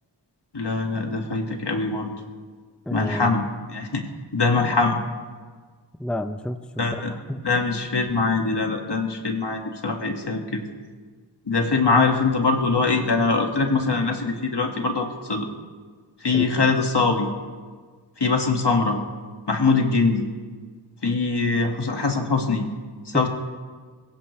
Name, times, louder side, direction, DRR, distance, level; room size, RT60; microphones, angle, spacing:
voice 1, 0.5-2.1 2.9-3.4 3.7-4.0 4.3-5.0 6.8-7.1 7.4-10.6 11.5-15.5 16.2-17.3 18.2-19.0 19.5-20.3 21.0-22.7 23.1-23.3, left 4 dB, 65° left, 2 dB, 2.0 m, -22 dB
voice 2, 2.9-3.3 6.0-7.4 16.3-16.5 23.1-23.3, left 1 dB, ahead, 8 dB, 0.7 m, -30 dB
21.0 x 17.5 x 3.3 m, 1.5 s
wide cardioid pair, 60°, 44 cm